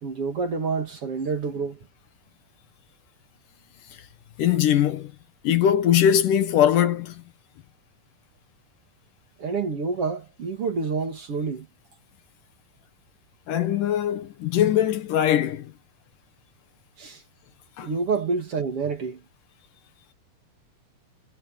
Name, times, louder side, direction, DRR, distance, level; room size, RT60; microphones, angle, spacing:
voice 1, 0.0-1.8 9.4-11.7 17.0-17.2 17.8-19.2, right 4 dB, 45° right, 2.7 m, -28 dB
voice 2, 4.4-5.1 5.4-7.2 13.5-15.7 17.8-17.9, left 10 dB, 70° left, 2.7 m, -21 dB
omnidirectional pair, 4.2 m